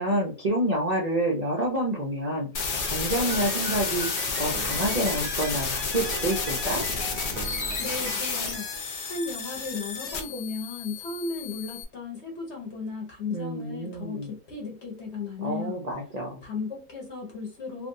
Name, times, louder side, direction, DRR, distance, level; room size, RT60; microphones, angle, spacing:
voice 1, 0.0-2.5 2.8-4.1 4.4-6.8 13.3-14.3 15.4-16.4, right 1 dB, 50° right, 0.5 m, -28 dB
sound 1, 2.5-11.8, left 4 dB, 70° left, 0.4 m, -31 dB
Piano, 3.1-9.6, right 6 dB, 85° right, 1.2 m, -40 dB
voice 2, 7.8-8.7 9.0-15.8 16.4-17.9, left 4 dB, 50° left, 1.2 m, -35 dB
3.3 x 2.5 x 2.6 m
omnidirectional pair, 1.7 m